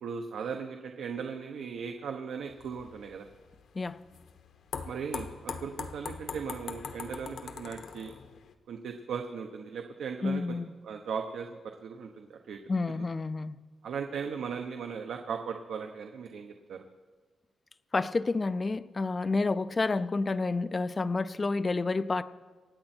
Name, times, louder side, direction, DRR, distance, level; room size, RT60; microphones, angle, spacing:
voice 1, 0.0-3.3 4.9-8.1 8.7-10.6 10.8-12.6 13.8-16.8, right 6 dB, 80° right, 4 dB, 1.0 m, -38 dB
sound 1, 2.5-8.5, left 6 dB, 70° left, 1.0 m, -42 dB
voice 2, 10.2-10.7 12.7-13.6 17.9-22.2, left 3 dB, 20° left, 14 dB, 0.4 m, -29 dB
25.5 x 8.9 x 4.4 m, 1.5 s
wide cardioid pair, 180°, 0 cm